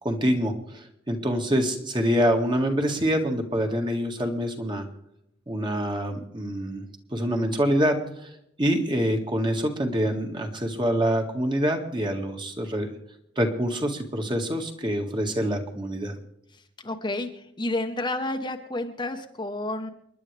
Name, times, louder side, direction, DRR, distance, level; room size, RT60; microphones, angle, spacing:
voice 1, 0.0-4.9 5.5-6.8 7.1-8.3 8.6-12.9 13.4-16.2, equal, 25° right, 4 dB, 1.9 m, -26 dB
voice 2, 16.5-19.9, left 2 dB, 25° left, 5 dB, 1.1 m, -31 dB
28.5 x 11.0 x 3.4 m, 0.79 s
head